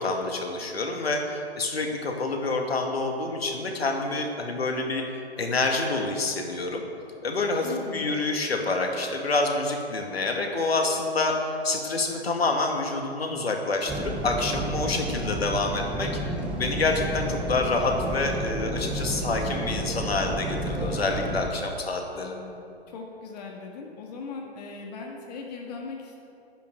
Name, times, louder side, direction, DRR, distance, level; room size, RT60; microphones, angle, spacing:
voice 1, 0.0-5.0 5.4-6.8 7.2-7.7 7.9-16.1 16.5-22.3, left 3 dB, 65° left, 2 dB, 2.2 m, -27 dB
voice 2, 7.6-8.2 22.1-26.2, left 4 dB, 40° left, 0 dB, 1.8 m, -39 dB
sound 1, 13.9-21.5, right 1 dB, 5° right, 0.6 m, -31 dB
12.0 x 10.0 x 6.8 m, 2.7 s
figure-of-eight pair, 125°, 32 cm